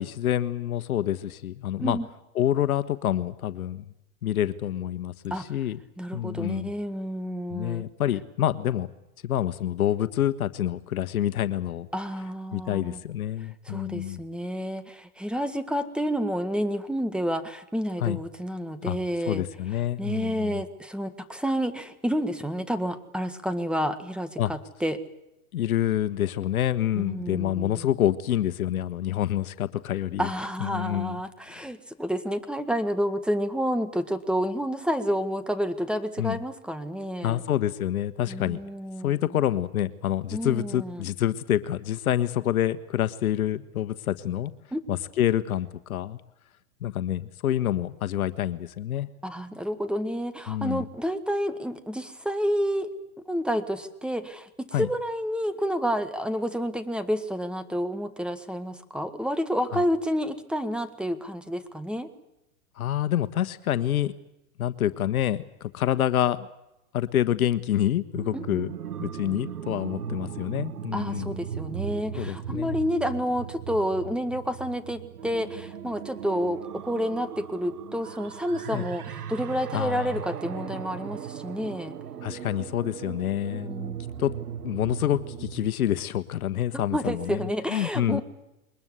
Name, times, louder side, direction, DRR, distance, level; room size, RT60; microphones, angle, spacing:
voice 1, 0.0-2.0 2.3-3.8 4.2-5.8 6.1-6.7 7.5-8.9 9.2-11.9 12.5-14.2 18.0-18.2 18.8-19.0 19.3-20.6 24.4-24.5 25.5-30.3 30.6-31.2 31.5-31.6 36.2-36.4 37.2-38.6 39.0-44.5 44.9-46.2 46.8-49.1 50.5-50.8 54.7-54.9 59.7-59.8 62.8-64.1 64.6-66.5 66.9-68.7 69.0-71.4 72.2-72.8 78.7-78.9 79.7-80.2 82.2-83.7 84.2-84.3 84.6-88.2, left 11 dB, 75° left, 14 dB, 1.5 m, -27 dB
voice 2, 6.0-7.8 11.9-13.0 13.7-19.4 20.0-25.0 27.0-27.8 30.2-37.4 38.3-39.1 40.3-41.0 44.7-44.8 49.2-52.9 53.3-62.1 68.3-68.4 70.9-82.0 83.6-84.0 86.7-88.2, equal, ahead, 10 dB, 1.8 m, -29 dB
sound 1, 68.1-85.7, right 9 dB, 90° right, 1.3 m, -38 dB
22.5 x 20.5 x 8.2 m, 0.89 s
hypercardioid pair, 120°, 44 cm